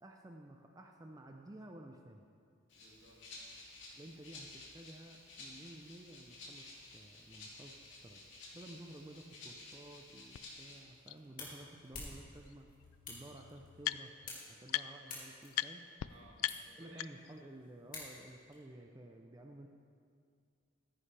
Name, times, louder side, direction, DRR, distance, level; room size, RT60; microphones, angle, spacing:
voice 1, 0.0-2.3 3.9-8.2 8.5-12.7 13.1-14.1 14.5-15.8 16.8-19.7, right 1 dB, 20° right, 3 dB, 0.4 m, -53 dB
Rattle (instrument), 2.7-10.8, left 2 dB, 60° left, 2.6 m, -53 dB
voice 2, 2.8-3.6 16.1-17.1, right 1 dB, 80° right, -2 dB, 2.1 m, -60 dB
sound 1, 10.3-10.4 11.1-11.2 12.5-12.6 12.8-14.3 14.7-15.1 15.5-15.7 16.0-16.1 16.4-17.4, left 13 dB, 90° left, 0.3 m, -39 dB
sound 2, 10.7-18.5, left 3 dB, 40° left, 2.3 m, -52 dB
15.0 x 9.7 x 3.3 m, 2.3 s
head